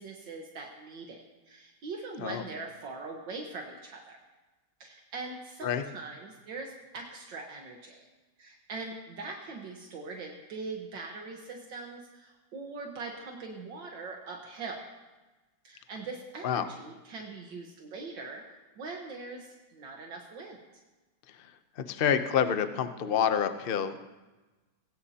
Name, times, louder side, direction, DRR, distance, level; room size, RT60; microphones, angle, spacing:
voice 1, 0.0-4.2 4.8-8.0 8.4-14.8 15.6-20.6, right 3 dB, 70° right, 0 dB, 2.0 m, -42 dB
voice 2, 21.8-24.0, left 8 dB, 70° left, 9 dB, 0.5 m, -28 dB
19.5 x 17.0 x 2.9 m, 1.2 s
omnidirectional pair, 2.1 m